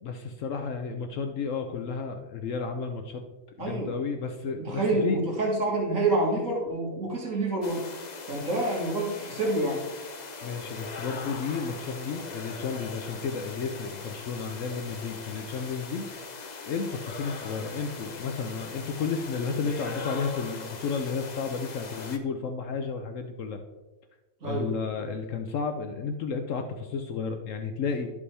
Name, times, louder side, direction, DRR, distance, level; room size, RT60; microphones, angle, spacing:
voice 1, 0.0-3.2 3.6-5.2 10.4-16.1 16.7-23.6 24.4-28.1, left 5 dB, 70° left, 5 dB, 1.0 m, -32 dB
voice 2, 3.6-3.9 4.5-7.8 8.3-9.8 24.4-24.7, right 2 dB, 70° right, -3 dB, 2.0 m, -27 dB
sound 1, 7.6-22.2, left 4 dB, 40° left, 0.7 m, -40 dB
12.5 x 5.2 x 3.3 m, 1.1 s
omnidirectional pair, 1.4 m